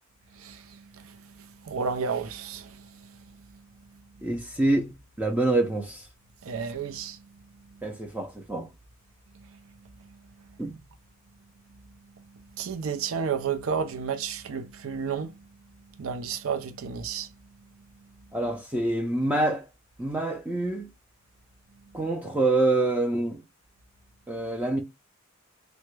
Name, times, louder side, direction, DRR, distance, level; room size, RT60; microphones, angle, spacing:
voice 1, 0.3-3.2 6.4-7.2 9.3-9.6 10.0-10.1 12.5-15.4 16.0-17.3, right 6 dB, 75° right, 0.5 m, -32 dB
voice 2, 4.2-4.9 5.2-6.1 7.8-8.7 10.6-10.7 18.3-19.6 20.0-20.9 21.9-23.4 24.3-24.8, right 2 dB, 10° right, 0.4 m, -26 dB
3.3 x 2.1 x 3.1 m
head